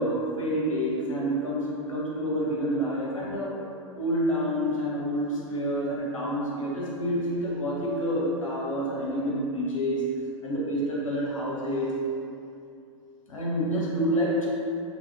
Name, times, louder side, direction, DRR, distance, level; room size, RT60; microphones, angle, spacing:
voice 1, 0.0-3.6 3.9-12.0 13.3-14.5, equal, 80° left, -5 dB, 0.7 m, -28 dB
2.8 x 2.4 x 2.7 m, 2.6 s
figure-of-eight pair, 95°, 16 cm